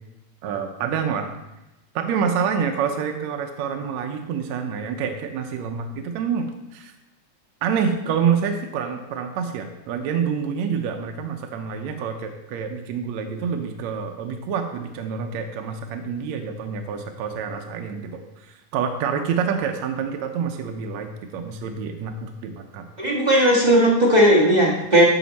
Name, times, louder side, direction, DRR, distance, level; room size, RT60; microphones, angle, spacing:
voice 1, 0.4-1.3 2.0-6.5 6.7-6.9 7.6-22.9, right 6 dB, 75° right, 4 dB, 1.9 m, -27 dB
voice 2, 23.0-25.0, equal, 40° right, -5 dB, 0.6 m, -16 dB
13.5 x 5.2 x 4.1 m, 0.96 s
omnidirectional pair, 3.4 m